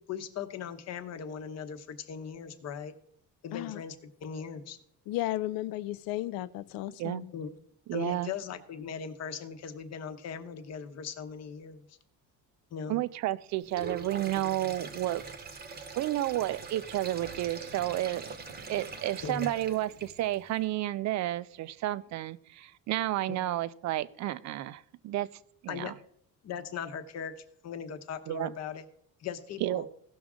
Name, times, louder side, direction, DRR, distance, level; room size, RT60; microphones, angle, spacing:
voice 1, 0.0-2.9 3.4-4.0 4.2-4.8 7.3-7.5 7.9-12.0 12.7-13.0 19.2-19.5 23.3-23.4 25.7-25.9 26.4-28.8 29.2-29.8, left 7 dB, 45° left, 0.9 m, -39 dB
voice 2, 3.5-3.8 5.1-7.3, left 15 dB, 75° left, 0.6 m, -34 dB
voice 3, 7.9-8.3 12.9-15.2 16.0-18.3 18.7-25.3 25.6-25.9 28.3-28.5 29.6-29.9, right 14 dB, 50° right, 0.5 m, -31 dB
Sink (filling or washing), 13.6-20.5, right 4 dB, 25° right, 0.9 m, -43 dB
16.5 x 6.2 x 3.6 m
cardioid pair, 155°, 35 cm